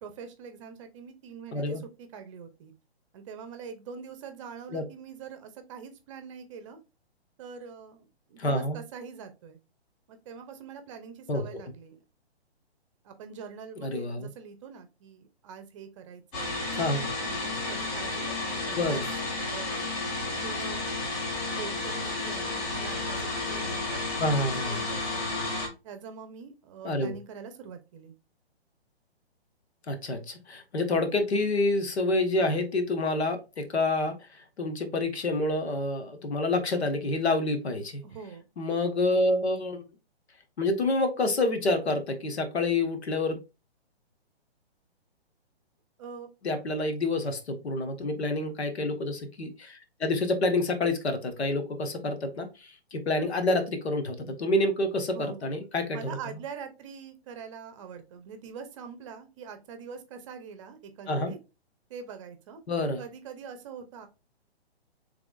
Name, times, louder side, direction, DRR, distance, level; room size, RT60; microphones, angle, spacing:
voice 1, 0.0-2.7 3.1-6.8 7.4-9.6 10.1-12.0 13.0-16.6 17.2-19.0 19.4-19.7 20.4-20.9 21.6-25.2 25.8-28.1 38.0-38.5 46.0-46.3 55.1-55.5 55.9-61.4 61.9-62.6 63.0-64.1, right 6 dB, 30° right, 8 dB, 0.7 m, -44 dB
voice 2, 1.5-1.8 4.7-4.8 8.4-8.8 11.3-11.4 13.8-14.3 16.7-17.1 18.8-19.1 24.2-24.8 26.8-27.1 29.9-34.1 34.6-38.0 38.6-39.8 40.6-43.4 46.4-56.2 61.1-61.3 62.7-63.0, left 2 dB, 75° left, 6 dB, 1.3 m, -28 dB
sound 1, 16.3-25.7, left 2 dB, 35° left, 2.0 m, -32 dB
6.0 x 3.4 x 2.4 m, 0.28 s
hypercardioid pair, 140°, 32 cm